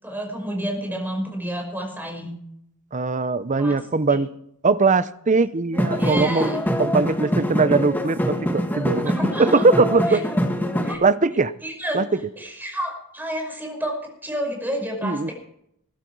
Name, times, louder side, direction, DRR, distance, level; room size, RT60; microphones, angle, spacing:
voice 1, 0.0-2.3 3.6-3.8 6.0-6.6 9.1-9.6 10.1-10.2 10.8-11.0 11.6-12.0 12.4-14.0 14.2-15.3, equal, 10° right, 2 dB, 5.4 m, -30 dB
voice 2, 2.9-4.3 4.6-10.2 11.0-11.5 11.9-12.2 15.0-15.3, right 3 dB, 35° right, 15 dB, 0.7 m, -21 dB
sound 1, 5.7-11.0, equal, 10° left, 1.7 m, -24 dB
21.5 x 11.5 x 4.7 m, 0.72 s
head